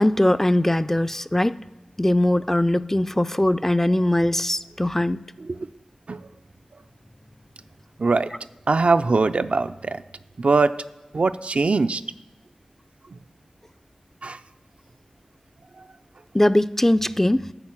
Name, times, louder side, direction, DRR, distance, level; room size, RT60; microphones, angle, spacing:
voice 1, 0.0-1.5 2.0-5.2 16.3-17.5, left 1 dB, 15° left, 0.3 m, -20 dB
voice 2, 8.7-10.0 10.4-10.7 11.1-12.0 14.2-14.4, right 3 dB, 60° right, 0.4 m, -21 dB
8.8 x 6.0 x 7.2 m
wide cardioid pair, 50°, 2 cm